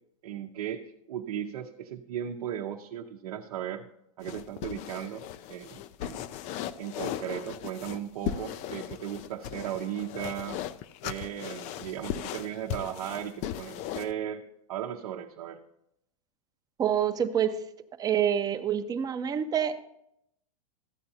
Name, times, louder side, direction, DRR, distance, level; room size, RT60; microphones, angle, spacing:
voice 1, 0.2-3.8 4.2-5.2 5.5-6.2 6.8-10.6 11.0-15.6, right 10 dB, 75° right, 1 dB, 0.7 m, -36 dB
sound 1, 4.2-14.1, left 11 dB, 40° left, 0.4 m, -37 dB
voice 2, 16.8-17.6 18.0-19.8, right 9 dB, 20° right, 8 dB, 0.6 m, -27 dB
14.0 x 8.6 x 2.8 m, 0.78 s
hypercardioid pair, 120°, 19 cm